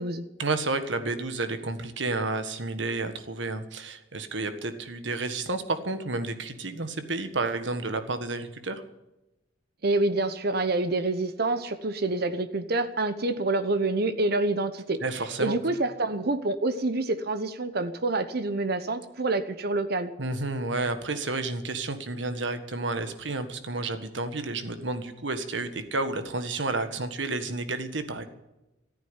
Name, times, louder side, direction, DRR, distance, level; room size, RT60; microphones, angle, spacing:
voice 1, 0.4-8.8 15.0-15.6 20.2-28.2, right 3 dB, 80° right, 9 dB, 1.6 m, -31 dB
voice 2, 9.8-15.0 15.4-20.1, right 2 dB, 55° right, 11 dB, 1.0 m, -27 dB
14.5 x 9.1 x 9.8 m, 0.97 s
head